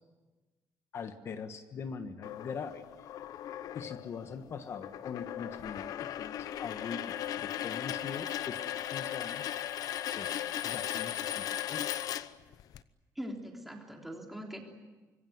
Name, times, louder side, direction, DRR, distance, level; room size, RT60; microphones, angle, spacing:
voice 1, 0.9-2.8 3.7-9.5 10.1-11.9, left 6 dB, 40° left, 9 dB, 1.4 m, -42 dB
sound 1, 2.2-12.8, left 11 dB, 60° left, 0.9 m, -37 dB
voice 2, 13.2-14.6, equal, 5° right, 1 dB, 3.5 m, -42 dB
25.5 x 22.5 x 9.6 m, 1.2 s
cardioid pair, 180°, 7 cm